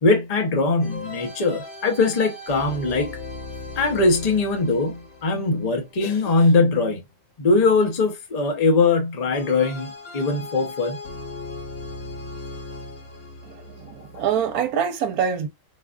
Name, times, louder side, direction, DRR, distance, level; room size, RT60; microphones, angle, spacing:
voice 1, 0.0-3.2 3.8-7.0 7.4-11.0 14.1-14.3, left 3 dB, 35° left, 0.7 m, -21 dB
sound 1, 0.8-6.9 9.3-14.7, left 3 dB, 70° left, 1.6 m, -38 dB
voice 2, 13.4-15.5, right 8 dB, 80° right, 1.1 m, -25 dB
4.2 x 2.4 x 2.3 m
omnidirectional pair, 1.5 m